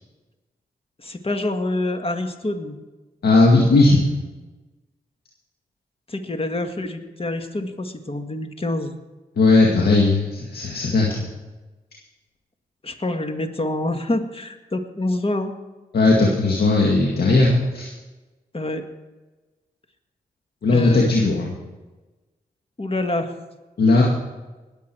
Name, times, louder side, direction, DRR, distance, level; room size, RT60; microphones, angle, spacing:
voice 1, 1.0-2.8 6.1-8.9 12.8-15.5 18.5-18.8 20.7-21.2 22.8-23.3, left 2 dB, 35° left, 6 dB, 1.9 m, -26 dB
voice 2, 3.2-4.0 9.4-11.3 15.9-17.9 20.6-21.5 23.8-24.0, left 3 dB, 75° left, -2 dB, 2.0 m, -17 dB
21.0 x 8.2 x 4.6 m, 1.2 s
supercardioid pair, 45°, 16 cm